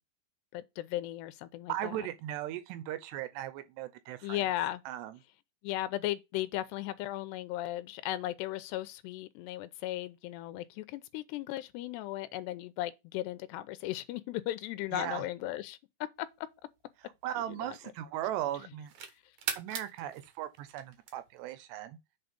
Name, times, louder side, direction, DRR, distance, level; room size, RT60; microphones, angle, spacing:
voice 1, 0.5-2.1 4.2-4.8 5.6-15.8 16.2-16.3 17.5-17.8, left 14 dB, 85° left, 2.8 m, -36 dB
voice 2, 1.7-4.5 4.9-5.2 14.9-15.2 17.0-18.9 19.6-22.0, right 12 dB, 85° right, 3.0 m, -38 dB
sound 1, 16.4-18.1 18.6-21.5, right 7 dB, 60° right, 2.0 m, -42 dB
8.2 x 4.3 x 5.3 m
omnidirectional pair, 4.8 m